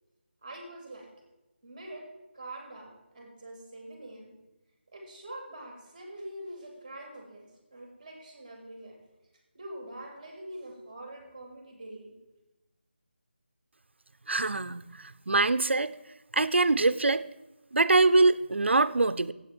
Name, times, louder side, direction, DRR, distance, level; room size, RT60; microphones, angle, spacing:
voice 1, 0.4-1.1 1.6-2.1 2.3-4.3 4.9-9.0 9.5-12.1, right 1 dB, 15° right, 2 dB, 2.2 m, -44 dB
voice 2, 14.3-15.9 16.3-17.2 17.7-19.3, right 3 dB, 85° right, 14 dB, 0.6 m, -24 dB
16.5 x 8.2 x 4.4 m, 1.0 s
figure-of-eight pair, 180°, 6 cm